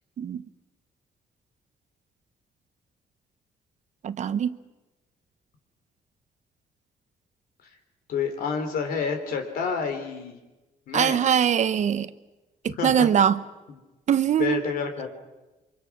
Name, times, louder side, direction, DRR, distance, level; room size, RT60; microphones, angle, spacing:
voice 1, 4.0-4.6 10.9-12.1 12.6-13.4 14.1-14.6, right 8 dB, 55° right, 14 dB, 1.0 m, -22 dB
voice 2, 8.1-10.4 10.9-11.2 12.7-13.1 14.4-15.1, left 6 dB, 85° left, 6 dB, 3.5 m, -29 dB
28.0 x 24.0 x 6.0 m, 1.1 s
cardioid pair, 120°, 15 cm